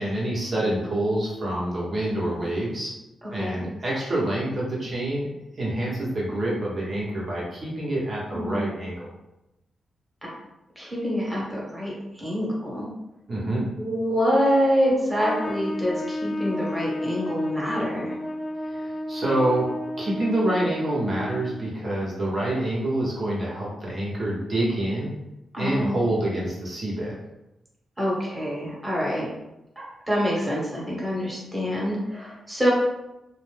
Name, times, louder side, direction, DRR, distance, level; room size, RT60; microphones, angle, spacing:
voice 1, 0.0-2.9 3.3-5.3 5.6-9.1 13.3-13.7 18.7-19.7 20.0-25.1 25.6-27.1, right 1 dB, 45° right, -5 dB, 1.0 m, -27 dB
voice 2, 3.2-3.6 8.3-8.7 10.8-12.9 13.8-18.1 25.5-26.1 28.0-29.3 29.8-32.7, equal, 15° right, -5 dB, 1.3 m, -26 dB
Trumpet, 15.2-21.7, left 1 dB, 40° left, 0.4 m, -32 dB
2.5 x 2.1 x 3.3 m, 0.93 s
cardioid pair, 60°, 0 cm